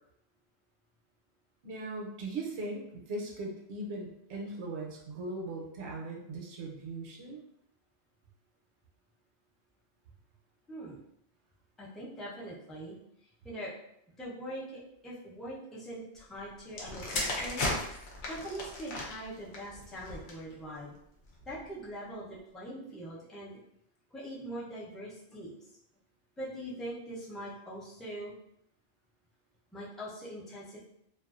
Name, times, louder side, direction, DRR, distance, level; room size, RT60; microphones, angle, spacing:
voice 1, 1.6-7.4, right 2 dB, 75° right, -2 dB, 0.9 m, -39 dB
voice 2, 11.8-13.0 13.4-13.8 14.2-17.6 18.3-20.9 21.5-23.6 24.1-25.7 26.4-28.3 29.7-30.8, right 1 dB, ahead, -8 dB, 0.3 m, -42 dB
sound 1, 16.7-20.5 21.3-21.6, left 2 dB, 75° left, 0.9 m, -36 dB
2.4 x 2.2 x 2.4 m, 0.77 s
omnidirectional pair, 1.2 m